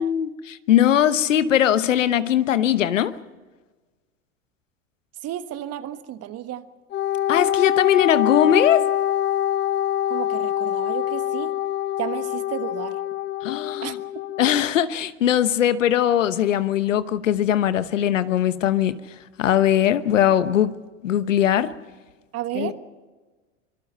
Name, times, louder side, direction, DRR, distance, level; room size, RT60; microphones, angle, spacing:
voice 1, 0.0-3.1 7.3-8.8 13.4-14.0 14.4-19.0 19.4-20.7 21.0-21.7 22.5-22.7, left 10 dB, 90° left, 14 dB, 1.1 m, -20 dB
voice 2, 5.2-6.6 10.1-11.6 12.0-13.0 13.8-13.9 22.3-22.7, right 12 dB, 40° right, 11 dB, 1.4 m, -32 dB
Wind instrument woodwind instrument, 6.9-14.6, left 11 dB, 30° left, 0.8 m, -25 dB
25.5 x 21.0 x 5.5 m, 1.3 s
hypercardioid pair, 95°, 37 cm